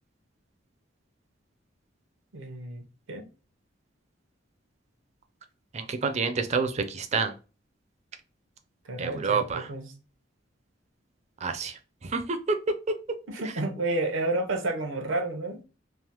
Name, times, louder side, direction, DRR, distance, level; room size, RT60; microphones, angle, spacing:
voice 1, 2.3-3.3 8.9-9.9 13.3-15.6, right 2 dB, 90° right, 4 dB, 0.7 m, -31 dB
voice 2, 5.7-7.3 9.0-9.7 11.4-11.7 12.1-12.7, right 4 dB, 35° right, 8 dB, 0.4 m, -28 dB
3.2 x 2.0 x 2.9 m, 0.32 s
head